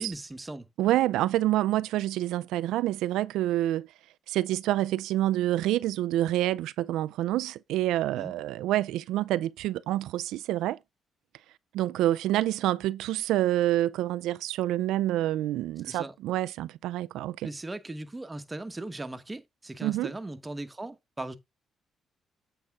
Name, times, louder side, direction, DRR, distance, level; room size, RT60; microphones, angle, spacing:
voice 1, 0.0-0.7 8.2-8.3 15.8-16.1 17.4-21.4, right 2 dB, 15° right, 1.1 m, -38 dB
voice 2, 0.8-3.9 4.3-10.8 11.7-17.5 19.8-20.1, right 14 dB, 90° right, 0.3 m, -27 dB
8.0 x 5.5 x 3.6 m
cardioid pair, 90°, 0 cm